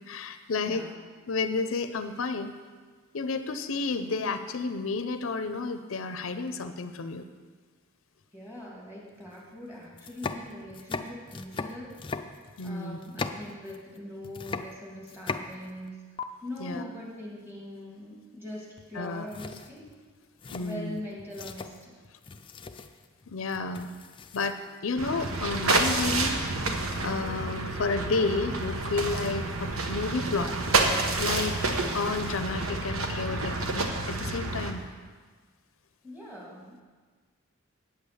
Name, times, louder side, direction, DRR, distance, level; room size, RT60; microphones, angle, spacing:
voice 1, 0.1-0.8 1.3-2.5 3.1-7.3 12.6-13.0 16.6-16.8 18.9-19.3 20.5-21.0 23.3-23.9 24.3-30.5 31.2-31.6 31.9-34.8, left 4 dB, 70° left, 9 dB, 0.6 m, -31 dB
voice 2, 0.6-1.0 8.3-11.9 12.6-16.0 16.4-19.9 20.6-22.0 36.0-36.8, left 1 dB, 10° right, -4 dB, 2.6 m, -42 dB
sound 1, 9.3-9.4 9.9-14.0 14.2-15.9 16.2-16.3 18.8-19.0 19.3-24.8, left 4 dB, 25° left, 0.5 m, -39 dB
sound 2, 25.0-34.7, right 2 dB, 85° right, 1.1 m, -29 dB
9.0 x 8.2 x 7.0 m, 1.5 s
head